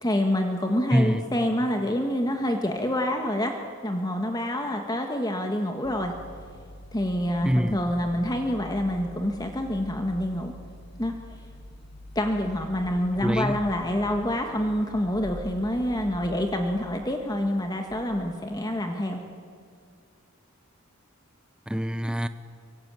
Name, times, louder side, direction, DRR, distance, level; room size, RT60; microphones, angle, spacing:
voice 1, 0.0-3.6 3.8-6.1 6.9-10.5 11.0-11.1 12.1-19.2, left 1 dB, 20° left, 4 dB, 1.6 m, -27 dB
voice 2, 0.9-1.3 7.4-7.8 13.1-13.6 21.7-22.3, equal, 5° right, 11 dB, 0.6 m, -25 dB
sound 1, 5.8-18.5, left 1 dB, 55° left, 5.3 m, -45 dB
25.5 x 24.0 x 9.0 m, 2.3 s
head